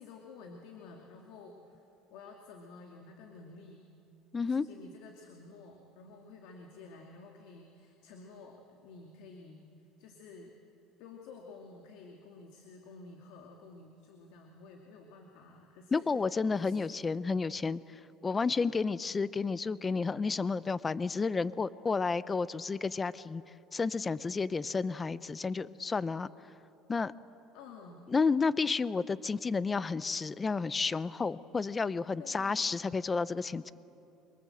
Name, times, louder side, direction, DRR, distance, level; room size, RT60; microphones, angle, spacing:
voice 1, 0.0-1.8 2.1-3.9 4.4-10.5 11.0-16.3 16.6-16.9 27.5-28.1 32.2-32.8, left 4 dB, 75° left, 2 dB, 2.4 m, -51 dB
voice 2, 4.3-4.7 15.9-17.8 18.2-23.4 23.7-26.3 26.9-27.1 28.1-33.7, left 4 dB, 20° left, 17 dB, 0.6 m, -31 dB
26.0 x 23.0 x 7.9 m, 2.9 s
cardioid pair, 140°, 0 cm